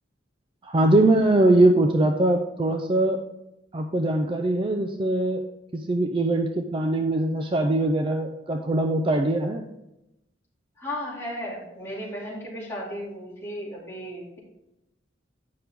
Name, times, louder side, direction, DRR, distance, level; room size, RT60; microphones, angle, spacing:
voice 1, 0.6-3.2 3.7-5.4 5.7-9.6, right 1 dB, 30° right, 5 dB, 0.4 m, -22 dB
voice 2, 10.8-14.4, equal, 15° left, -6 dB, 2.5 m, -35 dB
8.5 x 5.9 x 3.5 m, 0.89 s
head